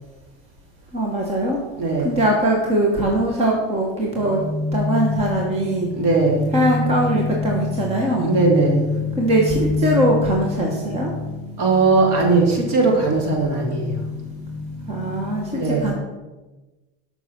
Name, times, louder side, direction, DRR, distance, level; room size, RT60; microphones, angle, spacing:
voice 1, 0.9-1.6 2.0-4.4 4.7-5.9 6.5-8.3 9.2-11.1 14.9-15.9, right 1 dB, 20° right, -1 dB, 1.4 m, -21 dB
voice 2, 1.8-2.2 6.0-6.5 8.2-8.9 11.6-14.0 15.5-15.9, right 3 dB, 50° right, 0 dB, 3.2 m, -19 dB
sound 1, 4.1-15.4, left 3 dB, 10° left, 3.0 m, -27 dB
12.5 x 6.0 x 5.9 m, 1.2 s
cardioid pair, 170°, 33 cm